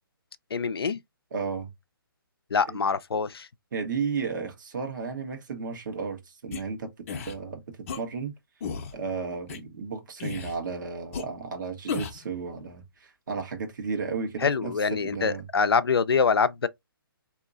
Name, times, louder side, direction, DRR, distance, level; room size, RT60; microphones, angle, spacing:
voice 1, 0.5-1.0 2.5-3.5 14.4-16.7, left 5 dB, 90° left, 0.4 m, -25 dB
voice 2, 1.3-1.7 2.7-2.8 3.7-8.3 8.9-14.7 15.0-15.5, right 5 dB, 55° right, 1.2 m, -33 dB
sound 1, 6.5-6.6 7.1-7.4 7.9-8.0 8.6-8.9 9.5-9.6 10.2-10.6 11.1-11.2 11.9-12.2, left 6 dB, 35° left, 0.7 m, -33 dB
3.7 x 2.8 x 2.5 m
hypercardioid pair, 150°, 12 cm